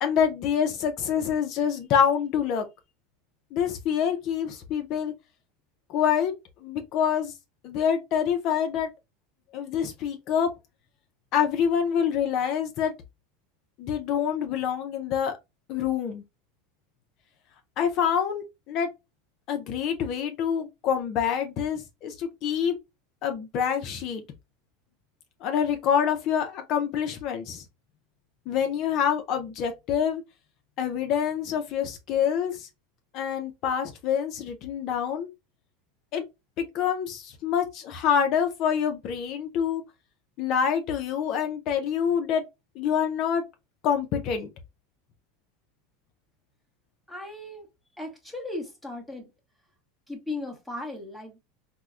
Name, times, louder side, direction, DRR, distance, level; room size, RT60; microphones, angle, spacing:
voice 1, 0.0-2.7 3.5-5.1 5.9-6.3 6.6-7.3 7.6-8.9 9.5-10.5 11.3-12.9 13.8-15.3 15.7-16.2 17.8-18.9 19.5-22.8 23.2-24.2 25.4-27.6 28.5-30.2 30.8-32.7 33.1-35.3 36.1-36.2 36.6-39.8 40.4-42.4 42.8-43.4 43.8-44.5, left 8 dB, 45° left, 0.4 m, -26 dB
voice 2, 47.1-47.7 48.0-49.3 50.1-51.4, left 2 dB, ahead, 0.9 m, -36 dB
4.4 x 2.0 x 2.4 m
supercardioid pair, 140°, 0 cm